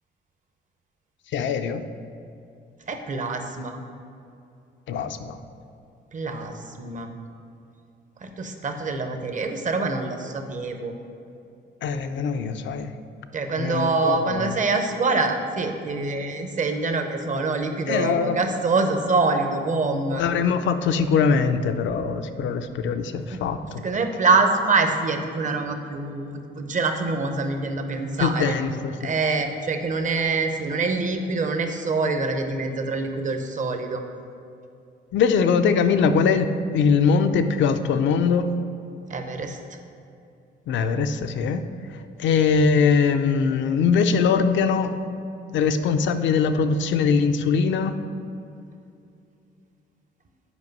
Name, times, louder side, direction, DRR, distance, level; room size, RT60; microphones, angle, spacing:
voice 1, 1.3-1.8 4.9-5.4 11.8-12.9 13.6-14.6 17.9-18.4 20.1-23.8 28.2-29.2 35.1-38.5 40.7-41.6 42.2-44.9 45.5-47.9, left 5 dB, 70° left, 9 dB, 0.5 m, -22 dB
voice 2, 2.9-3.8 6.1-7.1 8.2-10.9 13.3-20.2 23.3-23.4 23.8-28.6 29.0-34.0 39.1-39.6, right 3 dB, 40° right, 5 dB, 0.8 m, -25 dB
8.1 x 5.0 x 5.4 m, 2.6 s
cardioid pair, 90°, 20 cm